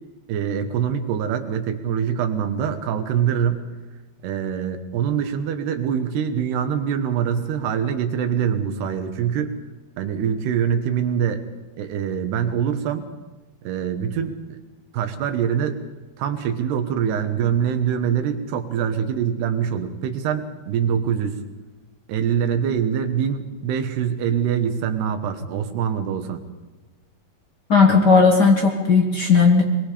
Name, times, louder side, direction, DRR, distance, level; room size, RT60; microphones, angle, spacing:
voice 1, 0.3-3.6 4.2-9.6 10.0-11.4 11.8-13.1 13.6-14.6 14.9-15.8 16.2-21.4 22.1-26.4, right 8 dB, 85° right, 7 dB, 3.4 m, -24 dB
voice 2, 27.7-29.6, left 4 dB, 85° left, 1 dB, 0.9 m, -15 dB
22.5 x 22.5 x 5.1 m, 1.2 s
omnidirectional pair, 4.6 m